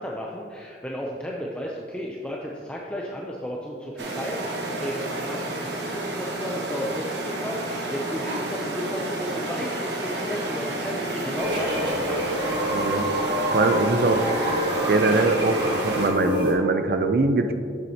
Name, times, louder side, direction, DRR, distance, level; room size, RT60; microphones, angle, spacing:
voice 1, 0.0-12.4, equal, 5° left, -3 dB, 0.4 m, -33 dB
sound 1, 4.0-16.1, right 1 dB, 70° right, 1.1 m, -30 dB
sound 2, 11.4-16.5, equal, 25° right, 1.4 m, -27 dB
voice 2, 12.7-14.2 14.9-17.5, right 3 dB, 55° right, 8 dB, 0.4 m, -23 dB
8.4 x 7.4 x 2.8 m, 2.4 s
head